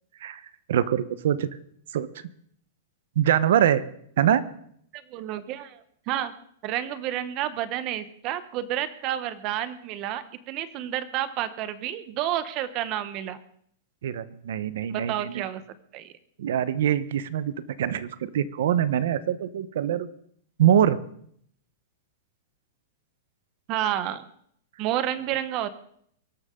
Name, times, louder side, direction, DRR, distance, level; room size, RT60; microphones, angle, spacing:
voice 1, 0.7-1.5 1.9-2.1 3.2-3.8 4.2-4.4 14.0-15.4 16.4-20.1 20.6-21.0, right 10 dB, 60° right, 15 dB, 1.0 m, -24 dB
voice 2, 4.9-5.8 6.1-6.3 6.6-13.4 14.9-15.6 15.9-16.1 23.7-24.2 24.8-25.7, right 12 dB, 25° right, 14 dB, 0.9 m, -30 dB
23.5 x 12.5 x 3.8 m, 0.66 s
supercardioid pair, 180°, 0 cm